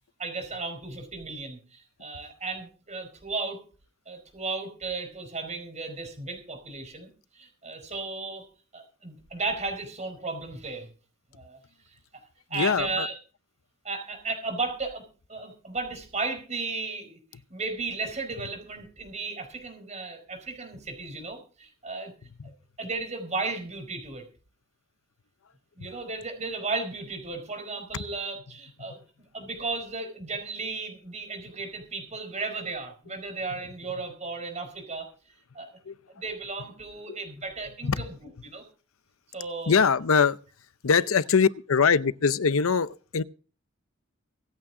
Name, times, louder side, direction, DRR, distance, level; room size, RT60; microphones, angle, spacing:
voice 1, 0.2-3.6 4.1-8.5 8.7-10.9 11.3-11.6 12.1-12.2 12.5-13.2 13.8-15.0 15.3-17.2 17.5-22.1 22.8-24.2 25.8-35.1 35.5-35.8 36.1-38.6 39.3-39.8, right 3 dB, 35° right, 4.8 m, -35 dB
voice 2, 12.5-13.1 35.9-36.0 37.8-38.1 39.7-40.4 40.8-43.2, left 5 dB, 80° left, 0.6 m, -22 dB
25.0 x 8.8 x 3.8 m
head